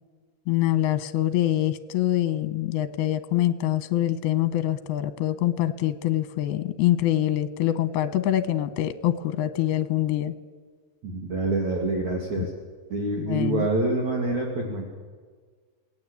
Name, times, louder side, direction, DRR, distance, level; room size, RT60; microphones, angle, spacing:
voice 1, 0.5-10.3 12.4-12.5 13.3-13.7, left 13 dB, 80° left, 13 dB, 2.8 m, -25 dB
voice 2, 11.0-12.5 12.9-14.8, right 2 dB, 50° right, 0 dB, 3.7 m, -26 dB
28.0 x 19.0 x 8.3 m, 1.5 s
omnidirectional pair, 4.6 m